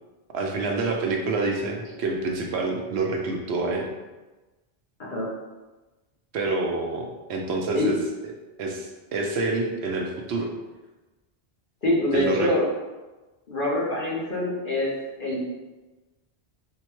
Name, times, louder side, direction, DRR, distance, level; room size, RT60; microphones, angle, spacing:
voice 1, 0.3-3.9 6.3-7.9 8.6-10.5 12.1-12.5, right 3 dB, 90° right, 1 dB, 0.9 m, -27 dB
voice 2, 11.8-12.7 13.5-14.9 15.2-15.4, left 1 dB, 55° left, -6 dB, 1.0 m, -25 dB
3.6 x 2.2 x 3.0 m, 1.2 s
omnidirectional pair, 1.1 m